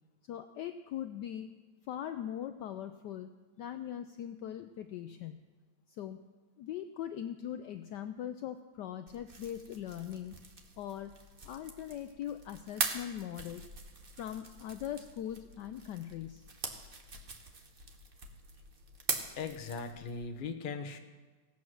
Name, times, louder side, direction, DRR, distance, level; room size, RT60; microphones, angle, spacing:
voice 1, 0.3-1.6 1.9-3.3 3.6-5.4 5.9-6.2 6.6-10.3 10.8-11.1 11.4-13.7 14.1-16.4, left 10 dB, 75° left, 9 dB, 1.0 m, -41 dB
sound 1, 9.1-20.2, right 3 dB, 35° right, 0.9 m, -43 dB
voice 2, 19.4-21.0, left 5 dB, 40° left, 5 dB, 0.7 m, -39 dB
16.0 x 8.4 x 6.2 m, 1.4 s
omnidirectional pair, 2.3 m